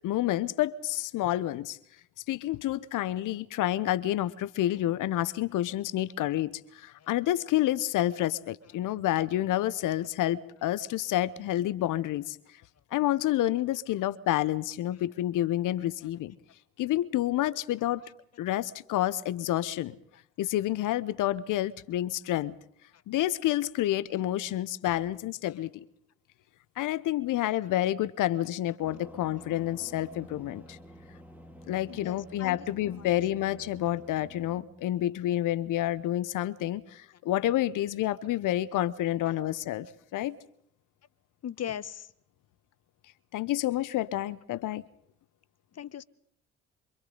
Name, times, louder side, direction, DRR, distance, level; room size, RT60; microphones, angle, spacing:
voice 1, 0.0-1.8 2.3-12.4 12.9-16.3 16.8-18.0 18.4-19.9 20.4-22.5 23.1-25.8 26.8-30.8 31.7-39.9 40.1-40.4 43.3-44.8, left 14 dB, 65° left, 1.0 m, -29 dB
sound 1, 28.8-34.6, equal, 5° right, 3.8 m, -50 dB
voice 2, 31.9-33.1 38.2-38.3 39.3-39.4 41.4-42.1 44.5-44.8 45.7-46.0, left 10 dB, 45° left, 1.2 m, -41 dB
28.0 x 26.0 x 3.9 m
hypercardioid pair, 50°, 34 cm